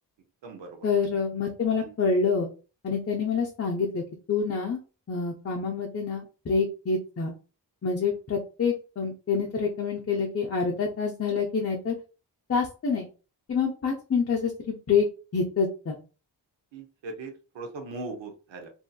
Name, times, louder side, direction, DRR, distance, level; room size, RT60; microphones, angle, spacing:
voice 1, 0.8-2.5 2.8-4.0 4.3-4.8 5.1-7.3 7.8-12.0 12.5-13.1 13.5-15.1 15.3-16.0, left 5 dB, 35° left, -1 dB, 0.6 m, -27 dB
voice 2, 16.7-18.7, right 3 dB, 85° right, 4 dB, 0.8 m, -39 dB
2.7 x 2.6 x 2.2 m, 0.34 s
wide cardioid pair, 90°, 44 cm